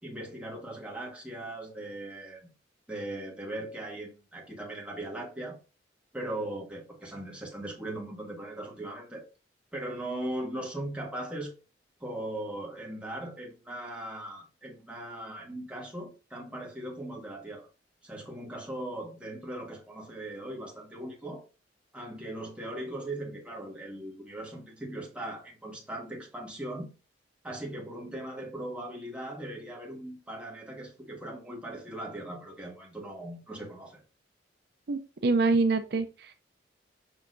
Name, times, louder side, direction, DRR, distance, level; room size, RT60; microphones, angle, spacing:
voice 1, 0.0-2.5 2.9-5.6 6.1-9.3 9.7-11.6 12.0-17.7 18.0-21.4 21.9-26.9 27.4-34.0, right 1 dB, 5° right, 1.6 m, -39 dB
voice 2, 34.9-36.3, right 3 dB, 60° right, 0.5 m, -26 dB
6.4 x 5.8 x 2.6 m
head